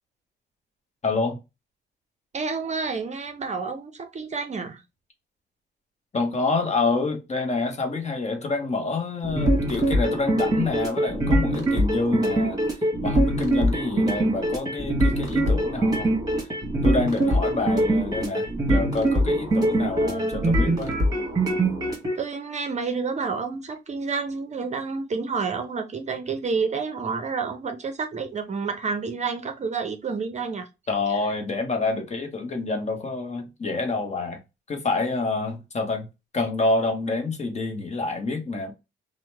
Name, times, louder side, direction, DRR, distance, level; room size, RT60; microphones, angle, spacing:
voice 1, 1.0-1.4 6.1-12.6 13.0-16.1 16.4-16.5 16.8-21.0 30.9-34.4 34.7-36.1 36.3-38.7, left 3 dB, 35° left, 0.9 m, -27 dB
voice 2, 2.3-4.8 20.0-20.5 22.2-30.7 31.1-31.2, right 4 dB, 35° right, 0.6 m, -29 dB
sound 1, 9.2-22.1, right 1 dB, 20° right, 1.4 m, -23 dB
2.8 x 2.1 x 3.2 m
cardioid pair, 90°, 20 cm